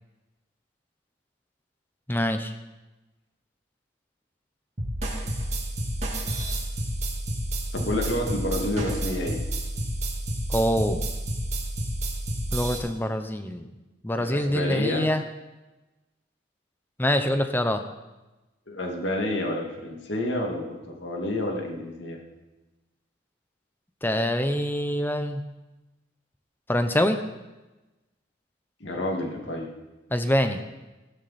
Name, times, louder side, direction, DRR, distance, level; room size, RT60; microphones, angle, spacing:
voice 1, 2.1-2.5 10.5-11.1 12.5-13.7 14.0-15.2 17.0-17.8 24.0-25.4 26.7-27.2 30.1-30.6, equal, 10° left, 8 dB, 0.8 m, -25 dB
sound 1, 4.8-12.8, right 1 dB, 35° right, 2.1 m, -30 dB
voice 2, 7.7-9.4 14.2-15.1 18.7-22.2 28.8-29.7, left 1 dB, 60° left, 1 dB, 2.3 m, -29 dB
16.0 x 12.5 x 4.3 m, 1.1 s
head